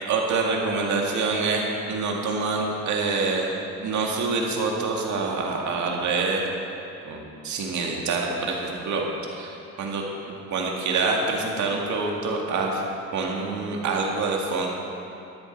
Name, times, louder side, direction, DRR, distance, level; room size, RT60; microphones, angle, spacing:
voice 1, 0.0-3.5 3.8-6.5 7.0-12.8 13.1-14.7, right 3 dB, 70° right, -1 dB, 2.1 m, -26 dB
13.0 x 11.0 x 4.6 m, 2.8 s
cardioid pair, 90°, 30 cm